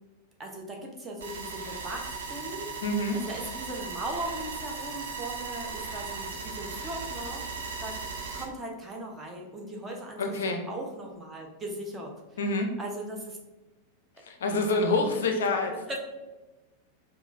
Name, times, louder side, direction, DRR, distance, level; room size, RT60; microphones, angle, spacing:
voice 1, 0.4-2.7 3.1-12.1 12.8-13.4 14.5-15.3 15.9-16.0, right 1 dB, 15° right, -1 dB, 0.8 m, -39 dB
sound 1, 1.2-8.4, right 4 dB, 65° right, 0.7 m, -37 dB
voice 2, 2.8-3.2 10.2-10.6 12.4-12.7 14.2-15.7, left 2 dB, 65° left, 4 dB, 0.4 m, -27 dB
4.7 x 2.3 x 2.5 m, 1.1 s
figure-of-eight pair, 90°, 0 cm